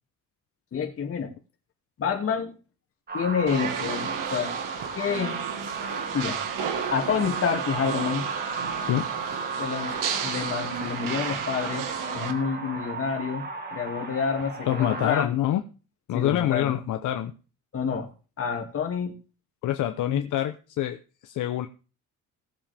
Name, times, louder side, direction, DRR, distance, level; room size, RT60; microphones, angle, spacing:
voice 1, 0.7-1.3 2.0-2.5 3.1-4.6 5.0-5.4 6.1-6.4 6.9-8.3 9.6-10.0 10.2-11.8 12.1-15.3 16.1-16.8 17.7-18.1 18.4-19.1 20.1-20.3, left 6 dB, 45° left, 3 dB, 2.5 m, -28 dB
sound 1, 3.1-15.2, right 4 dB, 30° right, 2.0 m, -34 dB
sound 2, 3.5-12.3, right 7 dB, 75° right, 1.7 m, -33 dB
voice 2, 14.7-15.6 16.1-17.3 19.6-21.0 21.2-21.7, left 12 dB, 70° left, 6 dB, 0.9 m, -26 dB
18.0 x 7.5 x 3.5 m, 0.36 s
cardioid pair, 155°, 32 cm